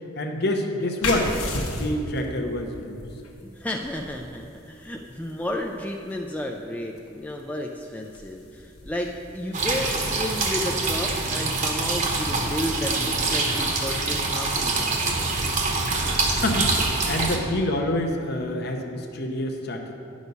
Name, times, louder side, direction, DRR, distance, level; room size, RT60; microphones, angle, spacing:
voice 1, 0.2-1.3 1.7-3.1 16.3-19.9, left 1 dB, 50° left, 3 dB, 0.9 m, -27 dB
sound 1, 1.0-12.3, left 2 dB, 90° left, 1.3 m, -37 dB
voice 2, 3.4-15.4, left 1 dB, 5° left, 1 dB, 0.4 m, -32 dB
sound 2, 9.5-17.4, right 3 dB, 35° right, 1.0 m, -25 dB
10.5 x 6.3 x 5.4 m, 2.6 s
head